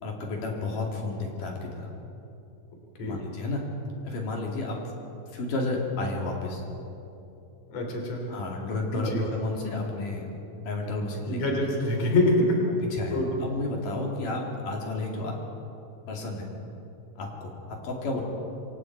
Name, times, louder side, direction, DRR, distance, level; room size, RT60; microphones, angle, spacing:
voice 1, 0.0-1.9 3.1-3.6 4.0-4.8 5.3-6.6 8.3-10.3 10.6-11.4 12.9-15.4 16.1-16.5 17.2-18.2, left 2 dB, 70° left, 0 dB, 4.1 m, -31 dB
voice 2, 7.7-8.2 8.9-9.2 11.3-12.6 13.1-13.3, left 1 dB, 50° left, 1 dB, 4.2 m, -25 dB
27.0 x 26.0 x 4.6 m, 2.8 s
omnidirectional pair, 3.9 m